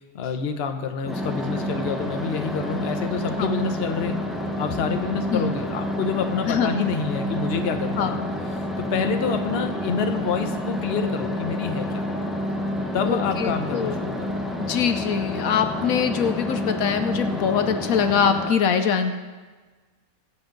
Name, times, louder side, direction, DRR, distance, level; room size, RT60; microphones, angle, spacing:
voice 1, 0.1-4.2 4.6-8.2 8.8-12.0 12.9-14.3, left 6 dB, 50° left, 6 dB, 1.0 m, -28 dB
sound 1, 1.0-18.5, left 1 dB, ahead, 0.8 m, -29 dB
voice 2, 8.0-8.3 13.0-14.0 14.6-19.1, left 7 dB, 75° left, 8 dB, 1.1 m, -23 dB
22.5 x 7.9 x 3.9 m, 1.4 s
omnidirectional pair, 1.5 m